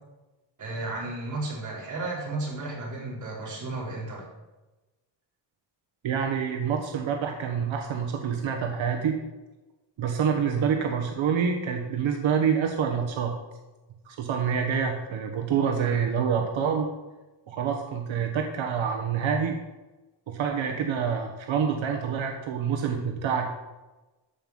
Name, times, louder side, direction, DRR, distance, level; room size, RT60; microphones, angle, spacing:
voice 1, 0.6-4.2 10.5-10.6, right 2 dB, 40° right, -4 dB, 4.4 m, -33 dB
voice 2, 6.0-9.2 10.0-13.3 14.0-16.9 17.5-19.6 20.3-23.5, right 7 dB, 85° right, 3 dB, 1.4 m, -27 dB
14.0 x 5.6 x 7.5 m, 1.1 s
wide cardioid pair, 165°, 45 cm